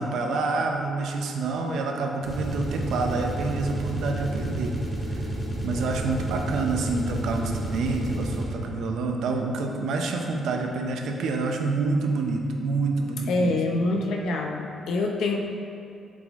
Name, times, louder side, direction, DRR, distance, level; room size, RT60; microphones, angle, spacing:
voice 1, 0.0-4.8 5.1-5.3 5.6-13.5, right 3 dB, 70° right, 3 dB, 0.6 m, -27 dB
sound 1, 2.2-8.7, right 1 dB, 5° left, 0.9 m, -31 dB
voice 2, 13.3-15.4, left 2 dB, 70° left, 1 dB, 0.7 m, -25 dB
7.4 x 4.1 x 3.5 m, 2.5 s
cardioid pair, 180°, 0 cm